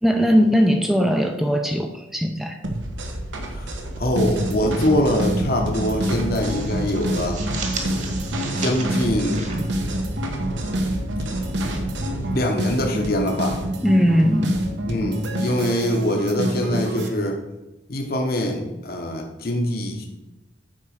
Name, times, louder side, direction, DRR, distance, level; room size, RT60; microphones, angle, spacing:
voice 1, 0.0-2.6 13.8-14.6, equal, ahead, 4 dB, 0.5 m, -19 dB
sound 1, 2.6-12.3, right 1 dB, 85° right, 1.3 m, -32 dB
voice 2, 3.5-7.4 8.6-9.5 12.3-13.6 14.9-17.4 17.9-20.1, left 1 dB, 50° left, 2 dB, 1.1 m, -24 dB
sound 2, 4.2-17.1, right 1 dB, 65° right, 1.1 m, -27 dB
sound 3, 4.4-5.1 5.4-5.6 6.0-10.5, right 4 dB, 40° right, 1.6 m, -36 dB
8.7 x 4.7 x 6.5 m, 1.0 s
head